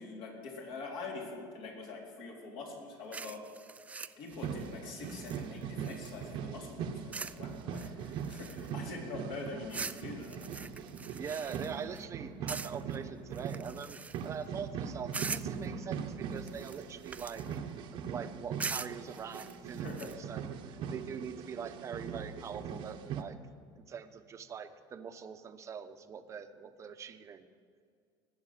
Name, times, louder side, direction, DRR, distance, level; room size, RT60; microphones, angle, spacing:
voice 1, 0.0-3.4 4.2-10.4 19.8-20.1, left 3 dB, 65° left, -1 dB, 4.0 m, -44 dB
sound 1, 3.1-6.3 7.1-7.4 7.7-8.9 9.7-12.0 12.5-13.0 13.3-14.4 15.1-15.6 16.4-17.6 18.6-20.1, right 4 dB, 15° right, 0.3 m, -42 dB
sound 2, 4.3-23.2, right 7 dB, 55° right, 1.0 m, -41 dB
voice 2, 11.0-17.5 17.9-23.4 23.8-27.5, right 7 dB, 30° right, 9 dB, 0.9 m, -43 dB
19.0 x 8.3 x 7.5 m, 2.2 s
cardioid pair, 140°, 10 cm